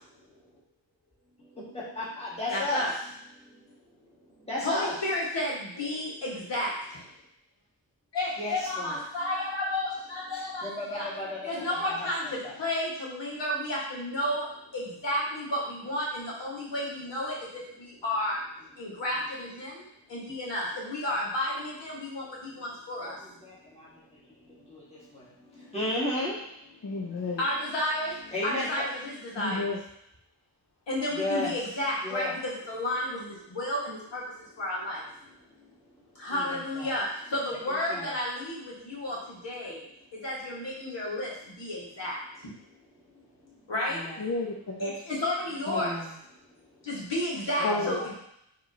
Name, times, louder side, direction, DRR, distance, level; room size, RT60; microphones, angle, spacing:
voice 1, 1.7-2.9 4.5-4.9 5.8-5.9 8.4-9.0 10.6-12.5 23.1-23.2 24.7-24.8 25.7-26.3 27.4-27.5 28.3-28.7 31.1-31.5 32.0-32.3 36.3-36.9 37.7-38.2 43.9-44.2 45.7-46.1 47.6-48.2, left 1 dB, 15° left, -7 dB, 1.4 m, -33 dB
voice 2, 2.5-2.9 4.6-7.0 8.1-11.1 11.4-18.4 18.8-19.8 20.1-23.1 27.4-28.1 28.4-29.7 30.9-34.2 34.6-35.0 36.2-39.8 40.1-42.2 43.7-44.0 44.8-45.9 46.8-48.2, left 1 dB, 70° left, -6 dB, 1.8 m, -32 dB
voice 3, 26.8-27.4 29.4-29.8 44.2-44.9 45.7-45.8 47.6-48.0, left 3 dB, 40° left, -1 dB, 0.5 m, -31 dB
6.0 x 2.9 x 2.8 m, 0.75 s
wide cardioid pair, 135°, 45 cm